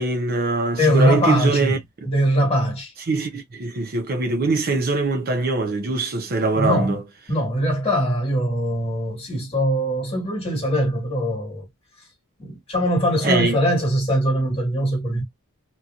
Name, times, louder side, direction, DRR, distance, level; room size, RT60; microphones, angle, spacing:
voice 1, 0.0-1.8 3.1-7.0 13.2-13.6, right 3 dB, 45° right, 0.5 m, -22 dB
voice 2, 0.8-2.9 6.5-6.9 7.3-11.6 12.4-15.2, equal, 25° left, 1.4 m, -22 dB
2.8 x 2.6 x 2.3 m
head